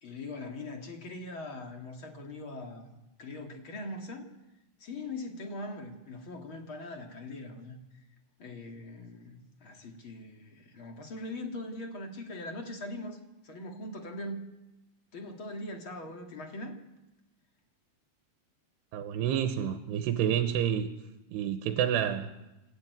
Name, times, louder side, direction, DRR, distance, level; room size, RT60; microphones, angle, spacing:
voice 1, 0.0-4.3 4.8-7.8 8.4-13.2 13.4-14.4 15.1-16.8, left 2 dB, 40° left, 3 dB, 2.4 m, -41 dB
voice 2, 18.9-20.9 21.3-22.3, right 9 dB, 85° right, 7 dB, 3.1 m, -29 dB
28.0 x 14.0 x 9.3 m, 1.0 s
omnidirectional pair, 4.7 m